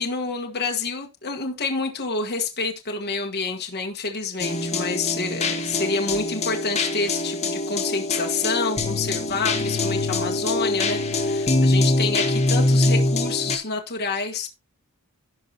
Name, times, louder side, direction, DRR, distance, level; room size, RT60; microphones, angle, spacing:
voice 1, 0.0-14.5, left 4 dB, 45° left, 1.5 m, -28 dB
sound 1, 4.4-13.6, left 2 dB, 30° left, 1.7 m, -23 dB
16.5 x 5.5 x 2.9 m
head